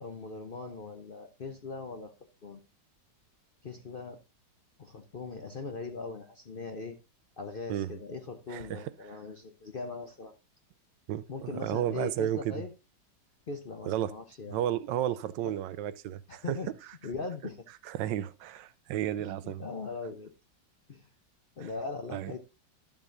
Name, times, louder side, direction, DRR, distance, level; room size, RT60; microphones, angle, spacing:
voice 1, 0.0-2.1 2.4-2.6 3.6-4.2 4.8-7.0 7.4-10.3 11.3-12.7 13.5-14.6 16.3-16.7 17.0-17.6 19.2-20.3 20.9-21.1 21.6-22.4, left 4 dB, 50° left, 0.7 m, -40 dB
voice 2, 8.5-8.9 11.1-12.6 13.9-14.1 14.5-16.6 17.9-19.6 21.6-21.7 22.1-22.3, right 12 dB, 85° right, 1.3 m, -33 dB
12.0 x 7.2 x 2.6 m
omnidirectional pair, 1.9 m